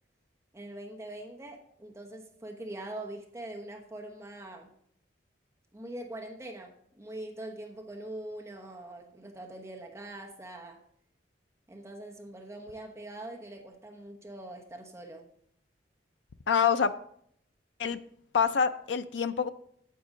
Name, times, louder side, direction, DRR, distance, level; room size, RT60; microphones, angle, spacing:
voice 1, 0.5-4.7 5.7-10.8 11.7-15.3, right 1 dB, 15° right, 1 dB, 1.1 m, -43 dB
voice 2, 16.5-16.9 17.8-18.0 18.3-19.5, left 6 dB, 80° left, 10 dB, 0.5 m, -26 dB
9.3 x 7.7 x 3.8 m, 0.66 s
head